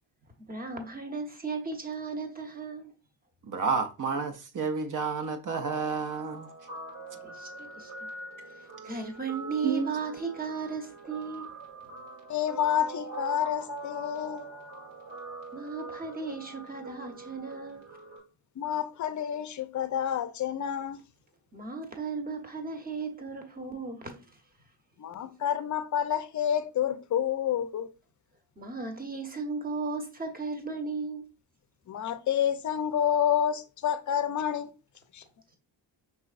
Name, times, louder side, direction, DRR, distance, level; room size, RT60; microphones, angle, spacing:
voice 1, 0.5-2.9 7.2-7.9 8.8-11.5 15.5-17.8 21.5-24.3 28.6-31.2, right 4 dB, 20° right, 0.9 m, -35 dB
voice 2, 3.4-6.5 9.6-9.9, right 5 dB, 45° right, 0.6 m, -30 dB
Guitar, 5.5-18.2, right 3 dB, 85° right, 1.4 m, -43 dB
voice 3, 12.3-14.5 18.6-21.0 25.0-27.9 31.9-34.7 35.1-35.2, left 9 dB, 40° left, 0.5 m, -29 dB
5.4 x 3.0 x 2.4 m
cardioid pair, 80°, 45 cm